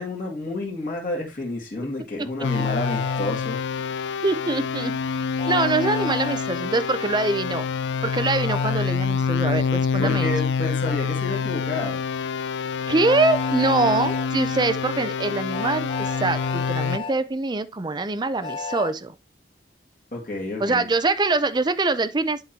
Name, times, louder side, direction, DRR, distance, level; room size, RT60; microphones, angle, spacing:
voice 1, 0.0-3.6 10.0-12.0 20.1-20.9, left 2 dB, 50° left, 2.1 m, -30 dB
sound 1, 2.4-17.0, left 5 dB, 85° left, 0.3 m, -26 dB
Train, 2.5-3.3 5.4-6.4 8.5-8.8 10.8-11.0 13.0-14.3 15.5-17.1 18.4-18.9, left 4 dB, 30° left, 0.5 m, -32 dB
voice 2, 4.2-5.0 5.5-7.7 8.0-10.3 12.9-19.1 20.6-22.4, right 3 dB, 25° right, 0.5 m, -24 dB
11.0 x 3.8 x 2.9 m
head